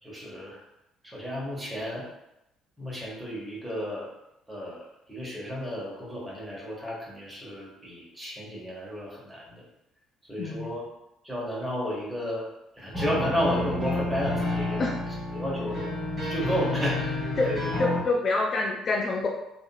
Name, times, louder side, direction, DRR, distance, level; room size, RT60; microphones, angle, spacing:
voice 1, 0.0-0.6 1.0-2.1 2.8-4.1 4.5-9.6 10.3-10.8 11.2-12.5 12.8-14.8 15.3-15.9 16.2-17.7, equal, 10° right, -5 dB, 1.1 m, -32 dB
voice 2, 10.4-10.7 14.8-14.9 17.4-17.5 17.8-19.3, left 3 dB, 40° left, -1 dB, 0.3 m, -26 dB
sound 1, 12.9-18.0, left 2 dB, 25° right, 1.2 m, -30 dB
2.6 x 2.5 x 2.2 m, 0.89 s
figure-of-eight pair, 50°, 0 cm